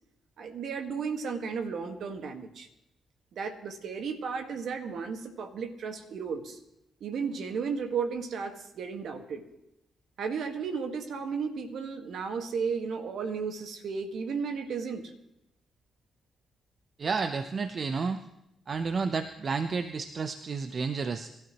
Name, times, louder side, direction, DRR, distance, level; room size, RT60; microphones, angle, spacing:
voice 1, 0.4-2.7 3.3-6.6 7.0-9.4 10.2-15.1, right 5 dB, 70° right, 6 dB, 1.7 m, -34 dB
voice 2, 17.0-18.2 18.7-21.3, right 4 dB, 50° right, 9 dB, 0.8 m, -31 dB
24.0 x 13.0 x 3.1 m, 0.84 s
supercardioid pair, 50°, 0 cm